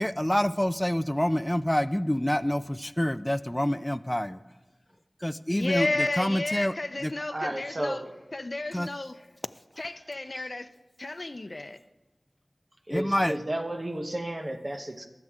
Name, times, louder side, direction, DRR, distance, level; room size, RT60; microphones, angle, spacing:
voice 1, 0.0-4.4 5.2-7.1 8.7-8.9 12.9-13.4, equal, 10° left, 0.4 m, -27 dB
voice 2, 5.5-8.0 8.3-9.1 9.8-10.7 11.0-11.8, left 2 dB, 45° left, 0.7 m, -32 dB
voice 3, 7.3-8.2 10.4-10.5 12.9-15.1, right 1 dB, 30° right, 1.1 m, -33 dB
23.5 x 7.9 x 3.7 m
wide cardioid pair, 70°, 0 cm